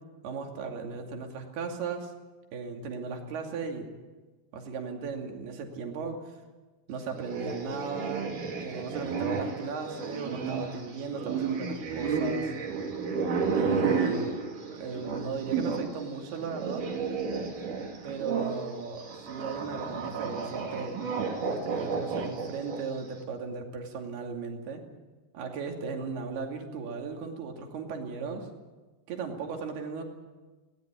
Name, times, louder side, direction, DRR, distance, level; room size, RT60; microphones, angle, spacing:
voice 1, 0.2-2.1 2.5-3.9 4.5-6.4 6.9-12.5 13.5-14.4 14.7-16.9 18.0-21.0 21.4-24.8 25.3-28.5 29.1-30.0, right 5 dB, 65° right, 3 dB, 4.4 m, -36 dB
sound 1, 7.2-15.9 16.2-23.0, right 5 dB, 50° right, 3.9 m, -32 dB
sound 2, 8.1-8.2 8.7-8.9 9.3-9.4 10.0-10.1 10.6-10.7 11.2-11.3 12.0-12.2 12.8-13.0 13.6-13.7 14.3-14.4 14.9-15.1, equal, 80° left, 7.5 m, -48 dB
19.5 x 19.0 x 9.6 m, 1.2 s
omnidirectional pair, 5.1 m